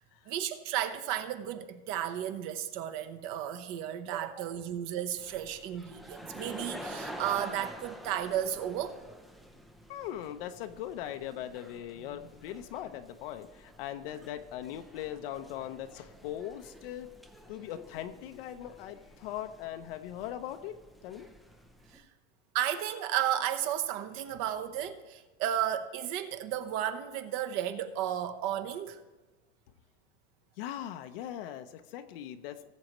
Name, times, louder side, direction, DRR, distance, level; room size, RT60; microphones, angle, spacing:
voice 1, 0.3-9.0 21.9-22.0 22.5-29.0, right 11 dB, 45° right, 1.0 m, -33 dB
sound 1, 5.2-22.0, equal, ahead, 0.4 m, -49 dB
voice 2, 9.9-17.1 17.5-20.8 21.0-21.3 30.6-32.7, left 11 dB, 60° left, 0.7 m, -40 dB
19.5 x 7.6 x 3.1 m
supercardioid pair, 155°, 32 cm